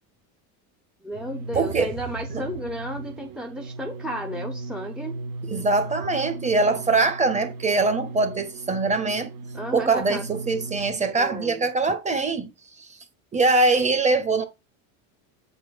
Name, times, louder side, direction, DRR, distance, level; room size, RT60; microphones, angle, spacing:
voice 1, 1.0-5.1 9.5-10.2 11.1-11.7, equal, ahead, 0.9 m, -33 dB
sound 1, 1.1-10.9, right 3 dB, 50° right, 1.5 m, -37 dB
voice 2, 1.5-1.9 2.3-2.4 5.5-9.3 9.7-12.5 12.8-12.9 13.3-14.4, right 3 dB, 15° right, 1.5 m, -23 dB
8.5 x 4.4 x 5.3 m
supercardioid pair, 140°, 40 cm